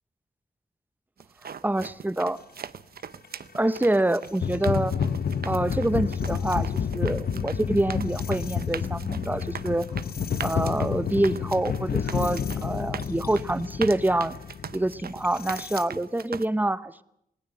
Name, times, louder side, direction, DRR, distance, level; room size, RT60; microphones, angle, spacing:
sound 1, 1.2-16.4, right 7 dB, 80° right, 0.8 m, -41 dB
voice 1, 1.4-2.4 3.5-4.9 5.4-9.9 10.4-14.3 14.7-17.0, right 1 dB, 10° right, 15 dB, 0.8 m, -26 dB
sound 2, 3.2-3.3 4.2-15.8, left 7 dB, 80° left, 0.8 m, -30 dB
19.0 x 18.5 x 7.9 m, 0.77 s
wide cardioid pair, 80°, 16 cm